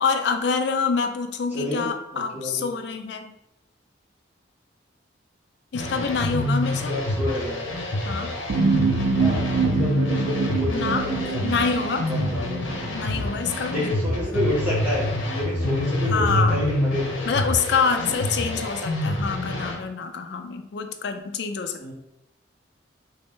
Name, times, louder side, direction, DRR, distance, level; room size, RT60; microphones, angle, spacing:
voice 1, 0.0-3.3 5.7-6.9 8.1-8.3 10.7-11.0 11.4-12.1 12.9-13.9 14.4-14.5 16.1-16.6 17.3-21.9, left 5 dB, 60° left, 6 dB, 0.4 m, -26 dB
voice 2, 1.5-1.9 2.1-2.6 6.9-7.6 9.1-11.5 12.1-12.6 13.7-17.1 18.1-18.3 18.6-18.7 21.8-21.9, left 1 dB, 10° right, -9 dB, 1.3 m, -29 dB
sound 1, 5.7-19.7, left 1 dB, 85° left, 0.7 m, -27 dB
sound 2, 8.5-14.1 14.5-14.6, right 4 dB, 85° right, 0.3 m, -26 dB
3.0 x 2.7 x 3.6 m, 0.86 s
head